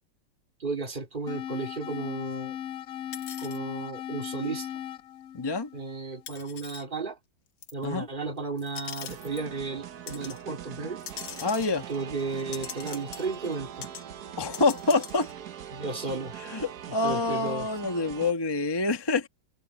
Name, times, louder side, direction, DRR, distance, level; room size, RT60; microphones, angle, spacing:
voice 1, 0.6-2.6 3.4-4.7 5.7-7.2 7.7-11.0 11.9-13.9 15.7-16.3 17.0-17.7, right 4 dB, 25° right, 2.4 m, -34 dB
sound 1, 1.3-6.3, left 10 dB, 70° left, 0.8 m, -37 dB
sound 2, 3.1-3.6 4.7-4.8 6.3-6.8 7.6-7.8 8.6-9.5 10.1-10.4 11.0-13.6 13.8-14.0 14.3-15.3, left 8 dB, 85° left, 2.2 m, -42 dB
voice 2, 5.3-5.7 7.8-8.1 11.4-11.9 14.4-15.3 16.5-19.3, left 3 dB, 15° left, 1.0 m, -26 dB
sound 3, 9.0-18.3, right 9 dB, 60° right, 1.5 m, -42 dB
omnidirectional pair, 2.0 m